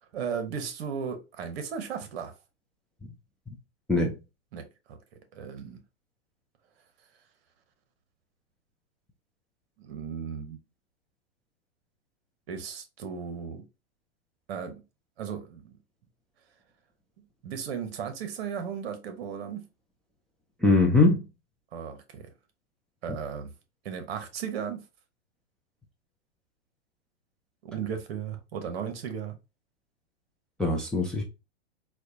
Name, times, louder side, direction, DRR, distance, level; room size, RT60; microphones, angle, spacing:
voice 1, 0.1-2.3 4.5-5.0 5.3-5.8 9.8-10.6 12.5-13.6 14.5-14.8 15.2-15.8 17.4-19.7 21.7-22.3 23.0-23.5 23.8-24.8 27.6-29.4, right 7 dB, 60° right, 1.0 m, -35 dB
voice 2, 20.6-21.3 30.6-31.2, left 2 dB, ahead, 0.3 m, -22 dB
4.2 x 2.3 x 2.7 m
hypercardioid pair, 115°, 34 cm